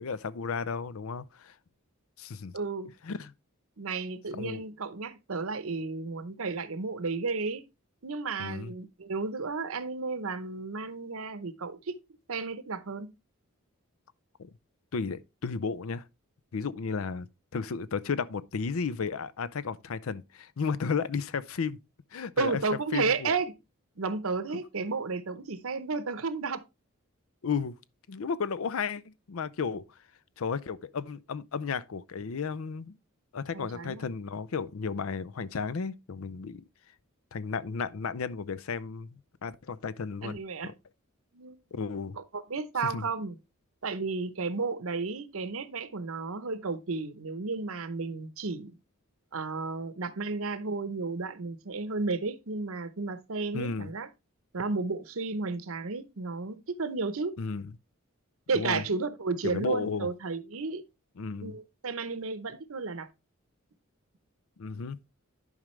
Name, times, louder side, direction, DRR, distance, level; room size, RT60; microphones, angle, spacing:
voice 1, 0.0-1.5 2.2-2.5 3.0-3.3 4.4-4.6 8.4-8.7 14.4-14.5 14.9-16.0 16.5-17.3 17.5-21.8 22.1-22.6 22.9-23.3 27.4-27.7 28.1-29.8 30.4-32.9 33.3-36.6 37.3-40.4 40.6-40.7 41.7-42.2 42.8-43.1 53.5-53.9 57.4-57.7 58.5-58.8 59.4-60.1 61.2-61.6 64.6-65.0, left 5 dB, 70° left, 0.5 m, -33 dB
voice 2, 2.5-2.9 3.8-7.7 8.0-11.9 12.3-13.1 22.4-23.5 24.0-26.6 33.5-34.0 40.2-40.7 41.3-41.6 42.1-43.4 43.8-48.7 49.3-54.1 54.5-57.4 58.5-60.8 61.4-63.1, right 4 dB, 70° right, 0.8 m, -33 dB
11.0 x 5.0 x 3.2 m
head